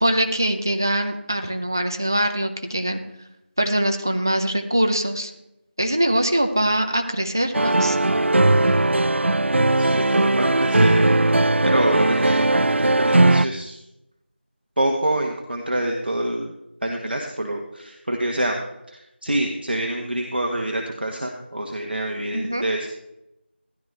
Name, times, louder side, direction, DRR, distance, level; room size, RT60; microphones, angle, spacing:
voice 1, 0.0-3.0 3.6-5.3 5.8-8.0 22.3-22.6, right 1 dB, 20° right, 6 dB, 0.5 m, -23 dB
sound 1, 7.5-13.4, right 2 dB, 85° right, 0.4 m, -18 dB
voice 2, 9.8-13.8 14.8-16.5 16.8-18.6 18.9-22.9, right 1 dB, 60° right, 2 dB, 1.4 m, -26 dB
14.0 x 11.5 x 3.3 m, 0.88 s
figure-of-eight pair, 175°, 6 cm